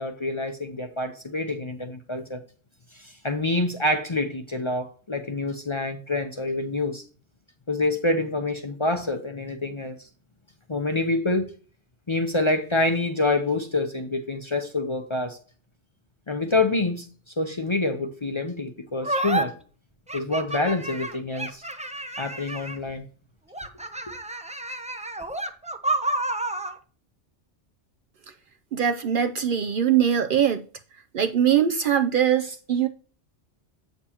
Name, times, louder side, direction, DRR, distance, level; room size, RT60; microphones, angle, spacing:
voice 1, 0.0-2.4 2.9-7.0 7.7-10.1 10.7-11.5 12.1-15.4 16.3-19.5 20.1-21.6 22.2-23.0, left 2 dB, 30° left, 0.6 m, -27 dB
sound 1, 19.0-19.4 20.1-22.9 23.5-26.8, right 2 dB, 10° right, 0.3 m, -30 dB
voice 2, 28.7-30.7 31.1-32.9, right 9 dB, 60° right, 0.6 m, -22 dB
8.3 x 6.7 x 2.9 m
omnidirectional pair, 1.2 m